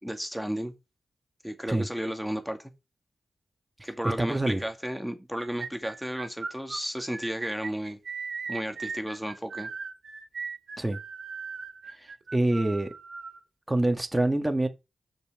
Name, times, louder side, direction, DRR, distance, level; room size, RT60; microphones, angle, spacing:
voice 1, 0.0-0.7 1.4-2.7 3.8-8.0 8.5-9.7, equal, ahead, 2.1 m, -33 dB
voice 2, 4.2-4.6 10.8-11.0 12.0-12.9 13.7-14.7, right 1 dB, 15° right, 1.9 m, -26 dB
sound 1, 5.4-13.4, right 5 dB, 65° right, 2.1 m, -38 dB
7.8 x 6.7 x 4.9 m
cardioid pair, 45°, 0 cm